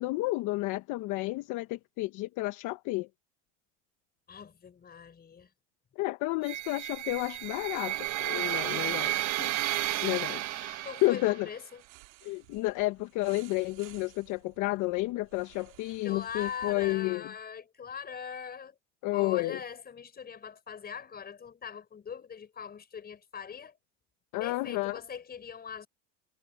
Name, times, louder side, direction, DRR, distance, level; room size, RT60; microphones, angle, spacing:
voice 1, 0.0-3.1 6.0-9.5 10.0-11.5 12.2-17.2 19.0-19.6 24.3-25.0, left 20 dB, 55° left, 1.2 m, -31 dB
voice 2, 4.3-5.5 10.8-11.8 16.0-18.8 19.1-23.8 24.4-25.9, left 7 dB, 25° left, 5.2 m, -41 dB
sound 1, 6.4-11.5, right 15 dB, 50° right, 1.6 m, -32 dB
sound 2, 11.8-16.9, right 30 dB, 75° right, 4.6 m, -56 dB
supercardioid pair, 115°, 36 cm